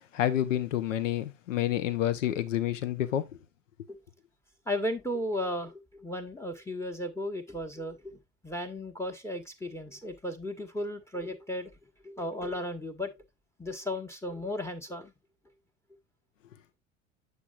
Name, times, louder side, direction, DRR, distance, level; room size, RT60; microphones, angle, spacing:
voice 1, 0.1-3.3, left 12 dB, 75° left, 0.9 m, -28 dB
voice 2, 4.7-8.2 8.4-11.7 12.0-13.2 13.6-15.1, left 1 dB, 5° left, 1.2 m, -35 dB
8.2 x 6.7 x 2.4 m
figure-of-eight pair, 70°, 38 cm